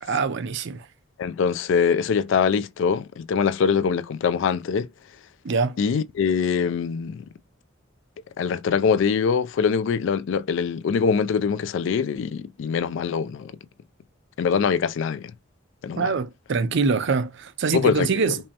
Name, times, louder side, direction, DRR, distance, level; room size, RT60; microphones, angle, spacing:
voice 1, 0.0-0.9 5.4-5.8 15.9-18.4, right 4 dB, 65° right, 0.5 m, -24 dB
voice 2, 1.2-4.9 5.8-7.2 8.4-13.5 14.4-15.3 15.8-16.1 17.7-18.3, left 6 dB, 65° left, 0.3 m, -23 dB
5.3 x 2.0 x 2.8 m
head